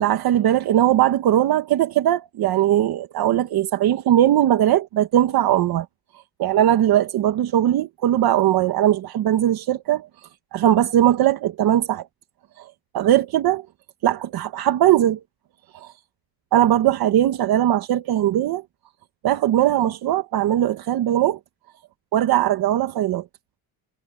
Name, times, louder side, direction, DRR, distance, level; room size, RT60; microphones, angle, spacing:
voice 1, 0.0-5.9 6.4-10.1 10.5-12.0 12.9-13.6 14.0-15.2 15.7-15.9 16.5-18.6 19.2-21.4 22.1-23.2, right 12 dB, 75° right, 1.3 m, -19 dB
cardioid pair, 125°, 36 cm